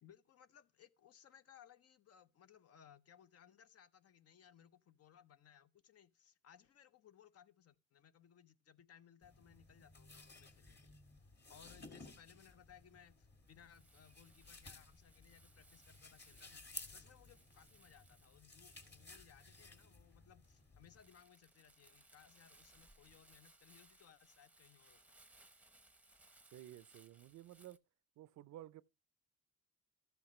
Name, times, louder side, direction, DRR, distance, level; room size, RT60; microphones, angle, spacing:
voice 1, 0.0-11.0 11.5-25.2, left 9 dB, 55° left, 0.7 m, -64 dB
sound 1, 9.2-21.0, left 3 dB, 35° left, 2.0 m, -57 dB
Crumpling crinkling, 13.4-27.8, right 2 dB, 5° right, 0.8 m, -67 dB
voice 2, 26.5-27.8 28.2-28.8, right 13 dB, 70° right, 0.5 m, -54 dB
13.0 x 8.0 x 3.1 m
cardioid pair, 90°, 30 cm